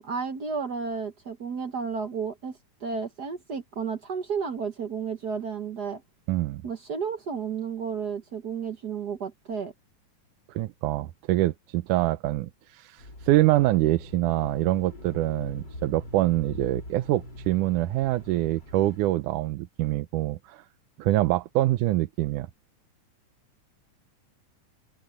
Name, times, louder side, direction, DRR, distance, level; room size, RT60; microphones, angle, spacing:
voice 1, 0.0-6.0 6.6-9.7, right 6 dB, 55° right, 1.1 m, -32 dB
voice 2, 6.3-6.6 10.5-20.6 21.0-22.5, right 16 dB, 80° right, 2.2 m, -25 dB
Bicycle / Mechanisms, 13.0-19.1, left 1 dB, 30° left, 5.7 m, -42 dB
omnidirectional pair, 3.6 m